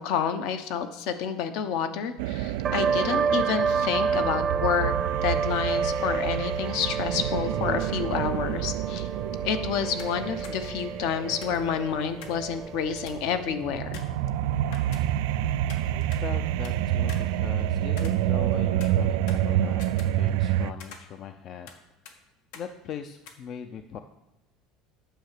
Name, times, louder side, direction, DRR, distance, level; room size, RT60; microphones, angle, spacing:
voice 1, 0.0-4.9 5.2-9.1 9.4-14.0, left 7 dB, 60° left, 10 dB, 0.9 m, -29 dB
sound 1, 2.2-12.1 13.6-20.7, right 12 dB, 80° right, 0.3 m, -28 dB
sound 2, 2.6-13.9, right 6 dB, 20° right, 0.6 m, -30 dB
sound 3, 10.0-10.2 10.4-10.6 11.4-12.5 12.7-12.8 13.1-13.3 13.9-15.4 15.7-16.8 17.1-18.5 18.8-20.5 20.8-21.8 22.0-22.2 22.5-22.7 23.2-23.3, left 6 dB, 75° left, 1.5 m, -47 dB
voice 2, 15.9-21.8 22.5-24.0, left 8 dB, 35° left, 9 dB, 0.5 m, -40 dB
9.3 x 6.8 x 6.6 m, 1.0 s
cardioid pair, 165°, 0 cm